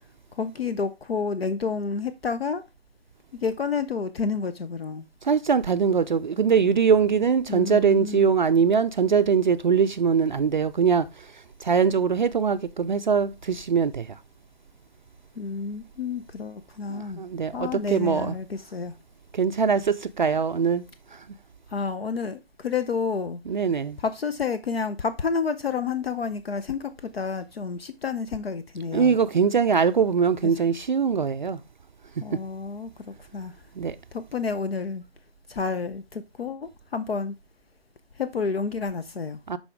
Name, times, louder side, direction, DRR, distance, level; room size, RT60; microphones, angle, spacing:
voice 1, 0.3-2.6 3.3-5.0 7.5-8.3 15.4-17.2 17.5-18.9 21.7-23.4 24.0-29.2 30.4-30.5 32.2-33.6 34.1-35.0 35.5-37.3 38.2-39.4, left 5 dB, 65° left, 0.7 m, -30 dB
voice 2, 5.2-11.3 11.6-14.2 16.9-18.4 19.3-20.8 21.1-21.2 23.5-24.0 28.9-31.6 33.8-34.0 39.5-39.6, right 6 dB, 45° right, 0.4 m, -22 dB
11.5 x 4.1 x 3.6 m
figure-of-eight pair, 140°, 33 cm